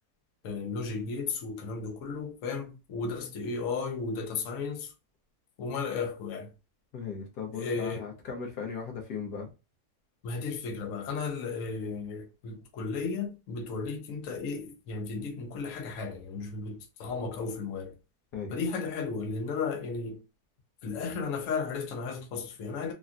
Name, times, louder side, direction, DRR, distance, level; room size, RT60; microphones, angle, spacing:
voice 1, 0.4-4.9 5.6-6.5 7.5-8.1 10.2-17.9 18.5-20.2 20.8-22.9, left 4 dB, 60° left, 1.0 m, -34 dB
voice 2, 6.9-9.5 18.3-18.6, left 6 dB, 80° left, 1.6 m, -37 dB
3.6 x 2.3 x 2.5 m
omnidirectional pair, 1.7 m